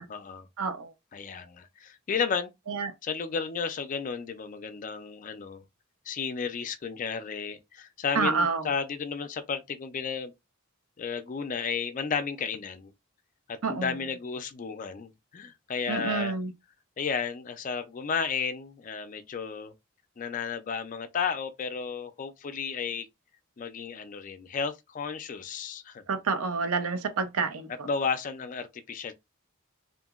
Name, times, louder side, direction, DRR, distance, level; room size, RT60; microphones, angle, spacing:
voice 1, 0.0-0.5 1.1-2.5 3.0-5.6 6.1-10.3 11.0-12.9 13.5-16.3 17.0-19.7 20.2-23.1 23.6-26.0 27.8-29.1, left 6 dB, 35° left, 0.3 m, -33 dB
voice 2, 0.6-0.9 2.7-2.9 8.1-8.7 13.6-13.9 15.9-16.5 26.1-27.9, right 4 dB, 85° right, 0.6 m, -28 dB
2.8 x 2.5 x 2.3 m
head